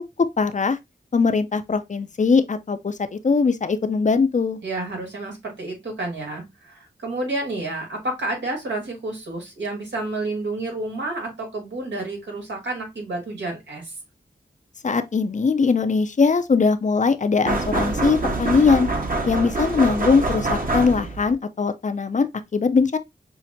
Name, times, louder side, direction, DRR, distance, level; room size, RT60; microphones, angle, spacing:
voice 1, 0.4-0.8 1.1-4.6 14.8-18.9 19.2-23.0, left 4 dB, 45° left, 0.5 m, -21 dB
voice 2, 4.6-13.9, right 2 dB, 90° right, 1.5 m, -30 dB
sound 1, 17.4-21.3, right 2 dB, 50° right, 1.1 m, -25 dB
5.7 x 2.1 x 2.6 m
cardioid pair, 45°, 18 cm